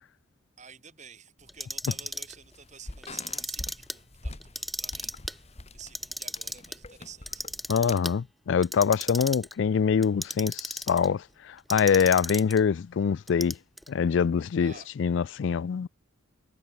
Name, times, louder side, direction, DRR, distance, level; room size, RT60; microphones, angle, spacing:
voice 1, 0.6-7.4 14.6-14.9, right 6 dB, 35° right, 6.3 m, -51 dB
sound 1, 1.4-8.0, left 2 dB, 30° left, 1.5 m, -45 dB
Clock, 1.5-2.3 3.0-3.9 4.4-5.3 5.8-6.7 7.3-8.1 8.6-9.5 10.0-11.1 11.7-12.6 13.3-13.9, equal, ahead, 1.4 m, -35 dB
voice 2, 7.7-13.6 13.9-14.7 15.0-15.9, left 6 dB, 65° left, 0.3 m, -24 dB
head